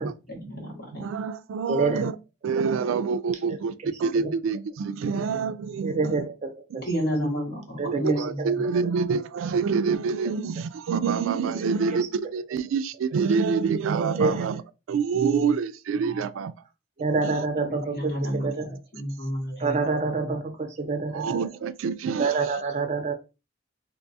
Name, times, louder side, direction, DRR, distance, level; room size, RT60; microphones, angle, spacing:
voice 1, 0.3-1.1 6.8-8.7 17.7-20.4, equal, 50° left, 1.7 m, -31 dB
voice 2, 1.0-2.1 2.4-3.7 4.0-6.3 7.8-14.6 14.9-16.5 17.2-17.4 21.1-22.4, right 5 dB, 80° right, 0.3 m, -26 dB
voice 3, 1.7-2.0 4.1-4.3 5.8-6.8 7.8-8.5 11.9-12.0 14.2-14.5 17.0-18.1 18.4-18.6 19.6-21.4 22.2-23.1, right 4 dB, 35° right, 0.6 m, -27 dB
2.9 x 2.3 x 4.0 m
head